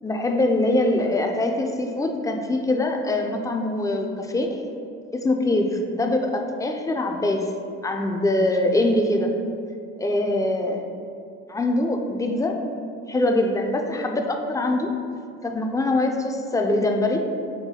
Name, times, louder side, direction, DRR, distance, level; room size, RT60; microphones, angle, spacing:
voice 1, 0.0-4.6 5.1-7.5 7.8-9.3 10.0-10.8 11.5-12.6 13.1-14.9 15.4-17.2, left 2 dB, 10° left, 3 dB, 0.3 m, -23 dB
3.9 x 2.2 x 4.2 m, 2.5 s
hypercardioid pair, 65°, 33 cm